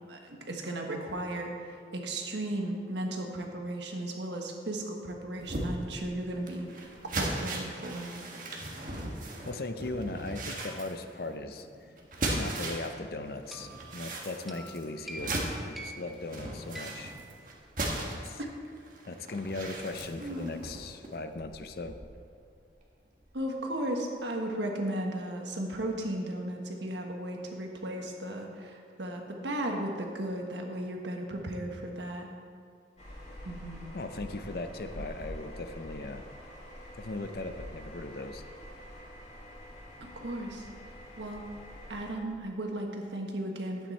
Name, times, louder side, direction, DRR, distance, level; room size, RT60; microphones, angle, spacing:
voice 1, 0.1-6.9 7.1-8.2 20.2-20.6 23.3-32.3 33.4-33.9 34.9-35.0 40.0-40.7 41.2-41.4 41.9-43.9, right 1 dB, 90° right, 2 dB, 1.4 m, -35 dB
sound 1, 5.4-13.0 13.3-22.3 22.7-22.8 23.2-23.3, right 1 dB, 50° right, 1.5 m, -38 dB
voice 2, 9.1-11.7 12.3-15.4 15.6-17.1 18.1-18.4 19.1-22.0 33.9-36.2 36.9-38.4, left 2 dB, 60° left, 8 dB, 0.6 m, -38 dB
sound 2, 13.5-18.2, right 1 dB, ahead, 0.7 m, -47 dB
sound 3, 33.0-42.1, equal, 40° left, 2.0 m, -46 dB
11.5 x 9.1 x 4.3 m, 2.3 s
head